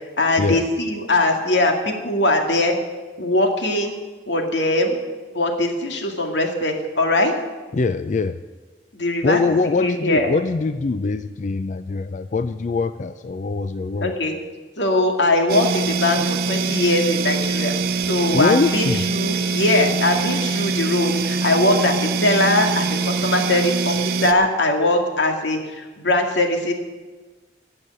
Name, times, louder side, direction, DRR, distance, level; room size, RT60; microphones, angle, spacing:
voice 1, 0.2-2.7 3.2-3.9 4.3-5.0 5.3-7.3 8.9-9.4 9.8-10.3 14.0-14.3 14.8-17.7 18.0-26.7, left 2 dB, 85° left, 3 dB, 2.3 m, -21 dB
voice 2, 7.7-8.4 9.2-14.1 18.3-19.0, left 4 dB, 45° left, 11 dB, 0.4 m, -22 dB
sound 1, 15.5-24.3, right 4 dB, 55° right, 0.9 m, -23 dB
15.5 x 7.0 x 9.9 m, 1.3 s
head